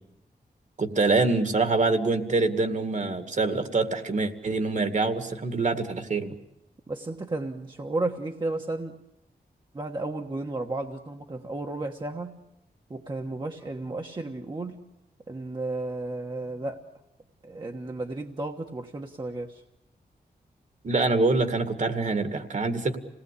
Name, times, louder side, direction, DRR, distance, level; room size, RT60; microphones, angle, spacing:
voice 1, 0.8-6.3 20.8-23.0, right 3 dB, 50° right, 8 dB, 2.1 m, -25 dB
voice 2, 6.9-8.9 9.7-12.3 12.9-14.8 15.3-16.8 17.4-19.6, right 2 dB, 30° right, 2 dB, 1.4 m, -33 dB
27.5 x 19.0 x 8.4 m, 0.90 s
wide cardioid pair, 125°, 17 cm